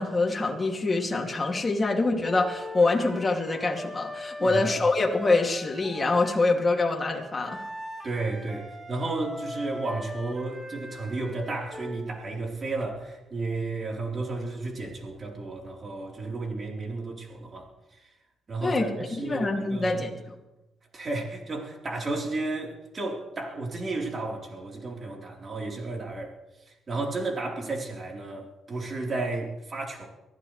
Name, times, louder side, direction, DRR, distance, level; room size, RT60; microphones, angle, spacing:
voice 1, 0.0-7.6 18.6-18.9 19.2-20.2, left 3 dB, 25° left, 0 dB, 2.7 m, -25 dB
sound 1, 2.2-6.5 7.4-12.1, left 1 dB, 15° right, 3.5 m, -40 dB
voice 2, 8.0-18.0 18.5-20.0 20.9-26.3 26.9-30.1, right 3 dB, 40° right, -1 dB, 4.1 m, -33 dB
23.5 x 15.0 x 3.4 m, 1.0 s
cardioid pair, 90°, 0 cm